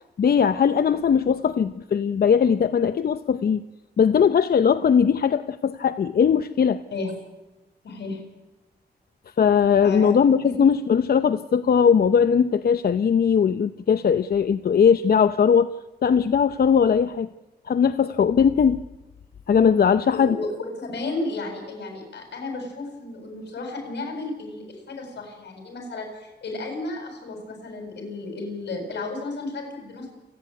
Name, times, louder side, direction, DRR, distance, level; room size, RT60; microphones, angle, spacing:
voice 1, 0.2-3.6 4.0-6.8 9.4-15.7 16.0-17.3 17.7-18.8 19.5-20.4, left 7 dB, 60° left, 11 dB, 0.7 m, -19 dB
voice 2, 7.8-8.2 9.8-10.1 10.4-10.5 20.1-30.1, left 2 dB, 85° left, 3 dB, 8.0 m, -33 dB
28.5 x 10.5 x 9.4 m, 1.1 s
wide cardioid pair, 105°, 18 cm